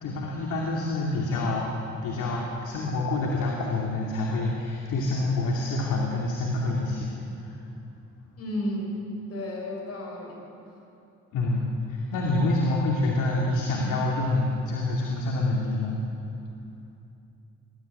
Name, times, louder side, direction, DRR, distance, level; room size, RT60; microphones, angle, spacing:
voice 1, 0.0-1.7 2.0-7.1 11.3-16.0, left 2 dB, 80° left, -2 dB, 2.7 m, -27 dB
voice 2, 8.4-9.0 9.3-10.4, left 1 dB, 55° left, 0 dB, 6.5 m, -32 dB
20.5 x 13.0 x 9.6 m, 2.7 s
cardioid pair, 90°, 30 cm